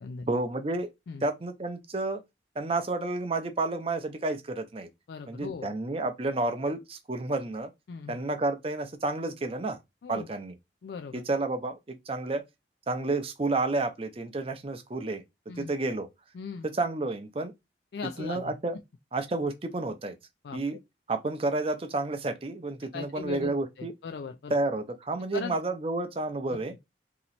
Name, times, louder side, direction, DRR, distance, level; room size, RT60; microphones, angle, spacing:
voice 1, 0.3-0.9 1.2-2.2 2.6-4.9 5.3-7.7 8.1-9.8 10.1-10.5 11.1-12.4 12.9-15.2 15.6-16.1 16.6-17.5 18.2-18.8 19.1-20.2 20.5-20.8 21.1-23.9 24.5-26.8, right 2 dB, 30° right, 0.6 m, -30 dB
voice 2, 5.1-5.7 7.9-8.2 10.0-10.3 10.8-11.2 15.5-15.7 16.3-16.7 17.9-18.5 20.4-20.6 22.9-23.5 23.8-24.6 25.3-25.5, left 5 dB, 60° left, 0.3 m, -38 dB
3.0 x 2.8 x 4.0 m
head